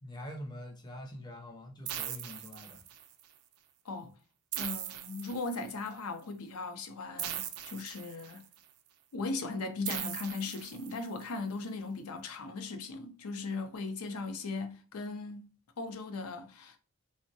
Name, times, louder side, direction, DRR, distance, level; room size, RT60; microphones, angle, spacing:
voice 1, 0.0-2.8, left 1 dB, 20° left, 0.5 m, -45 dB
sound 1, 1.9-3.2 4.5-5.9 7.2-8.6 9.9-11.2, right 10 dB, 85° right, 0.4 m, -40 dB
voice 2, 4.6-8.4 9.1-15.5 15.8-16.8, left 3 dB, 80° left, 0.5 m, -38 dB
3.4 x 2.1 x 2.6 m
head